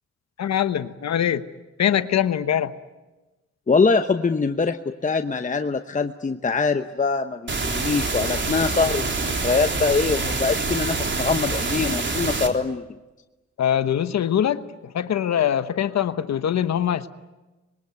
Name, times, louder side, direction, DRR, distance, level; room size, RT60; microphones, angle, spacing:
voice 1, 0.4-1.4 1.8-2.7 13.6-14.6 14.9-17.1, left 9 dB, 65° left, 11 dB, 1.1 m, -22 dB
voice 2, 3.7-12.8, left 4 dB, 25° left, 7 dB, 1.0 m, -23 dB
sound 1, 7.5-12.5, right 3 dB, 40° right, 3.6 m, -26 dB
26.0 x 22.0 x 9.5 m, 1.1 s
cardioid pair, 75°, 29 cm